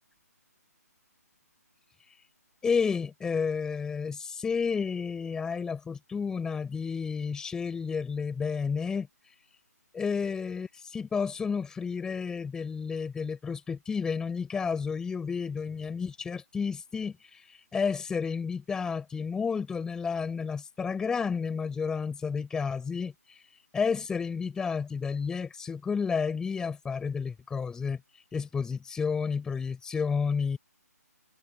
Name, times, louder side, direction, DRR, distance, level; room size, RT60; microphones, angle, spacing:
voice 1, 2.6-9.4 9.9-30.6, left 5 dB, 5° left, 4.3 m, -31 dB
figure-of-eight pair, 145°, 9 cm